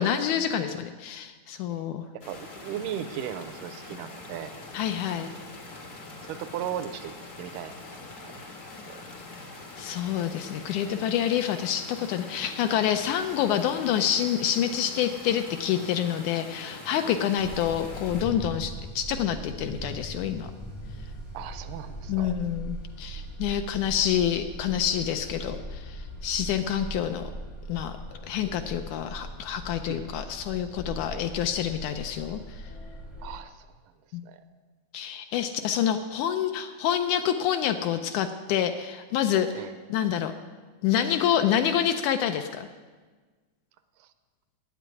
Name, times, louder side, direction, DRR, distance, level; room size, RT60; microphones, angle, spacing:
voice 1, 0.0-2.0 4.7-5.3 9.8-20.5 22.1-27.3 27.7-27.9 28.2-32.4 34.1-34.2 34.9-39.6 39.9-40.3 40.8-42.7, left 9 dB, 80° left, 8 dB, 1.8 m, -27 dB
voice 2, 2.1-4.5 6.2-8.4 8.9-9.0 21.3-22.3 29.9-30.3 31.1-31.3 33.2-33.7 34.2-34.4 39.6-39.7 44.0-44.1, right 10 dB, 80° right, 10 dB, 2.1 m, -37 dB
sound 1, 2.2-18.2, left 3 dB, 55° left, 0.8 m, -43 dB
sound 2, 17.4-33.4, right 1 dB, 20° left, 0.6 m, -40 dB
9.0 x 8.5 x 9.4 m, 1.4 s
omnidirectional pair, 3.8 m